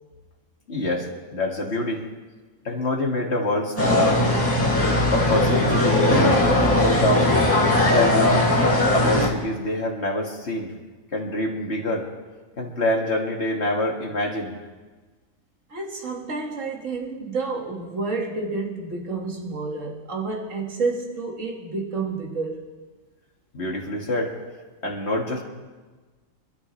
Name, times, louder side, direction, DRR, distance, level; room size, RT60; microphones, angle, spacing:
voice 1, 0.7-2.0 2.6-4.1 5.1-6.4 6.7-7.3 7.9-8.5 8.9-10.7 11.1-12.1 12.6-14.5 23.5-24.3 24.8-25.4, left 1 dB, 50° left, -1 dB, 2.4 m, -25 dB
sound 1, 3.8-9.3, left 1 dB, 10° left, 2.3 m, -19 dB
voice 2, 15.7-22.7, right 3 dB, 65° right, -1 dB, 2.3 m, -29 dB
26.0 x 12.0 x 3.3 m, 1.3 s
omnidirectional pair, 1.4 m